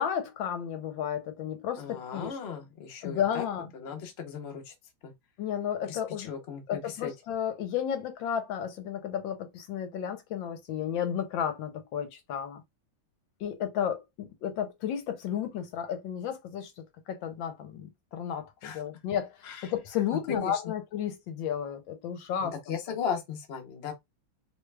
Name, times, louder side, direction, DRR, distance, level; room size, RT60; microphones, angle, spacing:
voice 1, 0.0-2.4 3.0-3.7 5.4-6.3 6.7-12.6 13.4-16.7 17.1-19.3 19.6-22.6, left 9 dB, 75° left, 1.3 m, -32 dB
voice 2, 1.8-3.5 3.7-4.7 5.0-5.1 5.8-7.1 18.6-18.8 19.4-19.7 20.3-20.7 22.4-23.9, left 7 dB, 55° left, 0.7 m, -37 dB
3.2 x 2.2 x 3.2 m
omnidirectional pair, 2.2 m